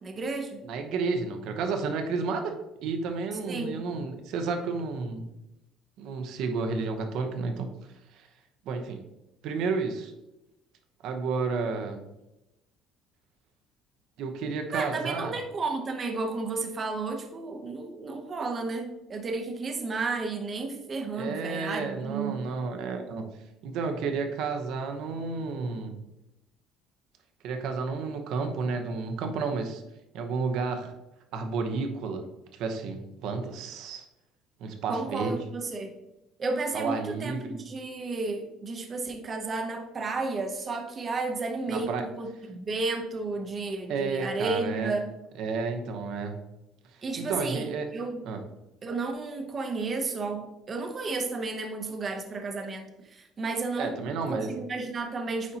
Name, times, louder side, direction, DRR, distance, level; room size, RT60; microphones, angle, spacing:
voice 1, 0.0-0.6 3.5-3.8 14.7-22.4 34.9-35.9 36.4-45.1 47.0-48.2 48.8-53.9 54.3-55.6, right 3 dB, 25° right, 5 dB, 0.8 m, -32 dB
voice 2, 0.6-2.5 2.8-5.3 6.0-7.7 8.1-8.3 8.7-9.0 9.4-10.1 11.0-12.0 14.2-15.3 21.1-23.2 23.6-25.9 27.4-29.8 30.1-30.9 31.3-32.2 32.5-34.0 34.6-35.4 36.7-37.6 41.7-42.0 43.9-44.9 45.4-46.3 47.2-47.9 48.3-48.4 53.8-54.5, right 4 dB, 65° right, 5 dB, 0.9 m, -31 dB
9.2 x 4.2 x 2.9 m, 0.94 s
cardioid pair, 155°, 0 cm